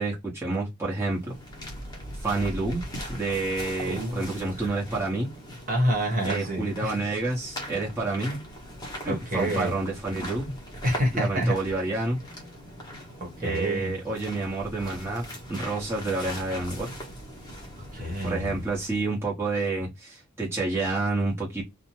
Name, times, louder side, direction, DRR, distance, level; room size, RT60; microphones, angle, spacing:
voice 1, 0.0-1.3 2.2-2.8 3.1-5.3 6.2-8.4 9.0-10.5 11.1-12.2 13.4-16.9 18.2-21.6, right 3 dB, 10° right, 1.0 m, -29 dB
sound 1, 0.9-19.1, equal, 20° left, 1.0 m, -40 dB
voice 2, 3.9-4.7 5.7-6.9 9.1-9.7 10.8-11.8 13.2-13.9 17.8-18.6, equal, 40° right, 1.2 m, -28 dB
2.8 x 2.1 x 3.0 m
head